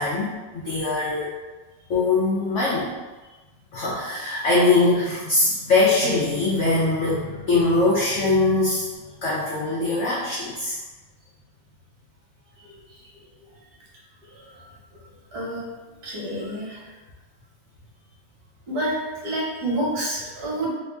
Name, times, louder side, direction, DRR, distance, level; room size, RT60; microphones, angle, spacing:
voice 1, 0.0-1.3 1.9-2.9 3.7-8.9 9.2-10.8, left 2 dB, 75° left, -6 dB, 0.6 m, -22 dB
voice 2, 15.3-15.6 16.0-16.8 18.7-18.9 19.2-20.7, right 1 dB, 60° right, -5 dB, 1.4 m, -28 dB
3.2 x 2.7 x 3.3 m, 1.2 s
omnidirectional pair, 2.0 m